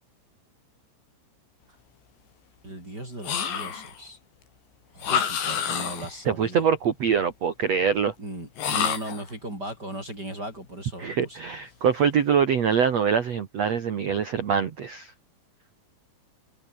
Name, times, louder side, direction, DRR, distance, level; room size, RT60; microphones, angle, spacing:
voice 1, 2.6-4.2 4.9-6.6 8.2-11.4, right 1 dB, 20° right, 7.7 m, -37 dB
sound 1, 3.2-4.0 5.0-6.2 8.6-9.3, left 8 dB, 60° left, 5.8 m, -28 dB
voice 2, 6.2-8.1 11.0-15.1, right 7 dB, 90° right, 1.4 m, -24 dB
omnidirectional pair, 5.9 m